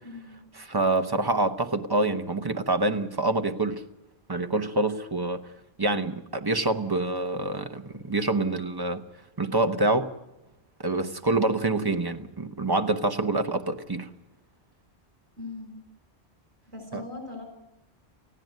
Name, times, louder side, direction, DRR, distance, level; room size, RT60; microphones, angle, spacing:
voice 1, 0.0-0.4 15.4-15.7 16.7-17.4, left 3 dB, 70° right, 5.9 m, -39 dB
voice 2, 0.5-3.8 4.3-5.4 5.8-9.0 9.4-10.1 10.8-14.1 16.9-17.0, right 2 dB, 20° right, 1.0 m, -26 dB
18.5 x 15.5 x 9.3 m
omnidirectional pair, 1.1 m